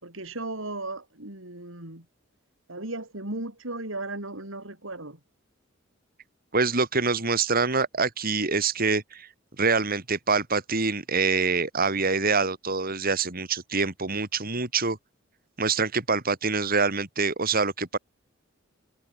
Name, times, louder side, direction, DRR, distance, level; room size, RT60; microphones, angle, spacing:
voice 1, 0.0-2.0 2.7-5.2, right 2 dB, 80° right, 5.7 m, -36 dB
voice 2, 6.5-9.3 9.6-15.0 15.6-18.0, right 4 dB, 50° right, 3.6 m, -25 dB
head